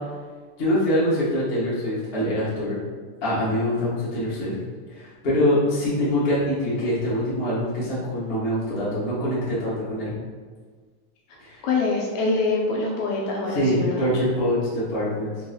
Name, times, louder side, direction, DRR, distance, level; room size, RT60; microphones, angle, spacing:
voice 1, 0.6-2.8 3.2-4.5 4.9-10.1 11.4-11.6 13.5-15.3, left 1 dB, 50° left, -9 dB, 0.7 m, -24 dB
voice 2, 11.6-14.1, left 3 dB, 80° left, -2 dB, 1.8 m, -25 dB
5.4 x 2.9 x 2.8 m, 1.5 s
omnidirectional pair, 3.6 m